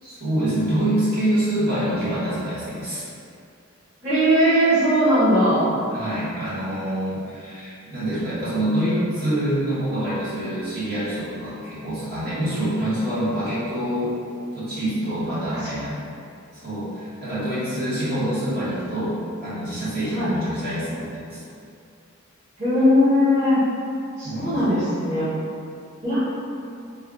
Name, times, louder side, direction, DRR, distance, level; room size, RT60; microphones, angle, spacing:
voice 1, 0.0-3.0 5.9-14.1 14.5-15.9 16.6-19.1 19.4-21.4 24.2-24.6, right 1 dB, 50° right, -12 dB, 1.4 m, -26 dB
voice 2, 4.0-5.7 15.2-15.4 15.7-15.8 20.1-20.3 22.6-23.6 24.2-25.3 26.0-26.2, equal, 30° right, -16 dB, 1.1 m, -19 dB
3.2 x 2.3 x 3.7 m, 2.5 s
head